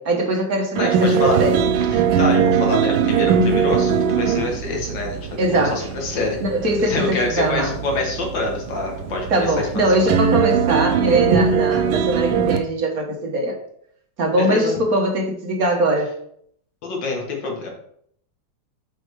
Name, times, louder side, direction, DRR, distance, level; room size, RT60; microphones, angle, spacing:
voice 1, 0.0-1.6 5.4-5.9 6.4-7.7 9.3-13.6 14.2-16.1, right 1 dB, 55° right, 1 dB, 1.5 m, -21 dB
voice 2, 0.8-1.4 1.9-6.4 6.8-9.7 14.4-14.7 16.8-17.7, left 3 dB, 70° left, 1 dB, 2.2 m, -26 dB
sound 1, 0.8-12.6, right 7 dB, 85° right, 1.5 m, -21 dB
6.7 x 4.5 x 4.6 m, 0.66 s
omnidirectional pair, 2.1 m